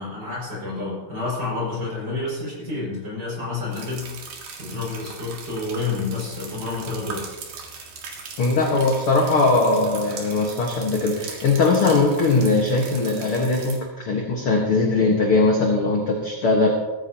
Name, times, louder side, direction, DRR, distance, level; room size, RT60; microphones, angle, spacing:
voice 1, 0.0-4.1 4.6-7.2, left 3 dB, 25° right, -4 dB, 6.2 m, -29 dB
sound 1, 3.7-13.8, right 5 dB, 70° right, 3.6 m, -39 dB
voice 2, 8.4-16.7, left 3 dB, 55° left, 0 dB, 1.5 m, -20 dB
17.5 x 14.5 x 2.9 m, 1.1 s
omnidirectional pair, 4.6 m